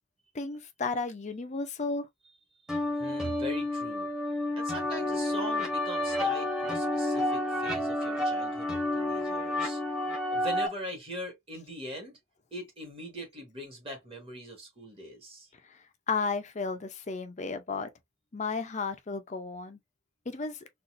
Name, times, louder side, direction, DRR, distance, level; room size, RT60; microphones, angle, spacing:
voice 1, 0.3-2.1 15.7-15.8 16.1-17.9 18.3-19.8 20.3-20.7, left 4 dB, 35° left, 0.5 m, -33 dB
sound 1, 2.7-10.7, left 1 dB, 5° right, 1.0 m, -30 dB
voice 2, 3.0-4.1 4.5-9.8 10.3-12.2 12.5-15.5, equal, 30° right, 1.5 m, -41 dB
4.0 x 2.5 x 2.5 m
head